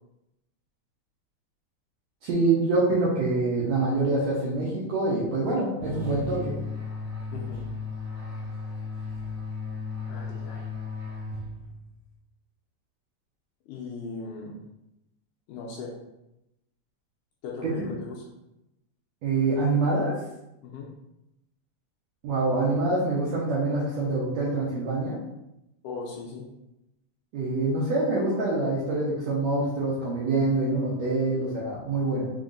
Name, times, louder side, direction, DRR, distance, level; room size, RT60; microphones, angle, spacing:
voice 1, 2.2-6.5 17.6-17.7 19.2-20.1 22.2-25.2 27.3-32.3, right 2 dB, 85° right, -6 dB, 1.5 m, -25 dB
sound 1, 5.8-11.9, left 4 dB, 55° right, 2.0 m, -35 dB
voice 2, 7.3-7.6 10.1-10.7 13.7-14.6 15.5-15.9 17.4-18.3 20.6-20.9 25.8-26.5, left 4 dB, 80° left, -2 dB, 1.9 m, -38 dB
5.0 x 3.8 x 2.5 m, 0.89 s
omnidirectional pair, 4.2 m